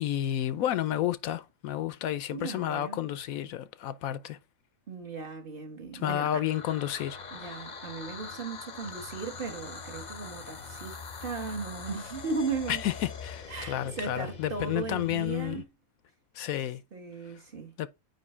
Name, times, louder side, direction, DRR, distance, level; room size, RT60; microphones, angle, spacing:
voice 1, 0.0-4.4 5.9-7.2 12.7-15.6 16.3-16.8 17.8-17.9, left 12 dB, 80° left, 1.1 m, -31 dB
voice 2, 2.3-3.0 4.9-6.4 7.3-12.8 13.5-15.6 16.9-17.7, right 4 dB, 40° right, 1.5 m, -37 dB
sound 1, 6.3-15.6, left 5 dB, 40° left, 0.7 m, -43 dB
9.3 x 3.1 x 4.4 m
omnidirectional pair, 1.5 m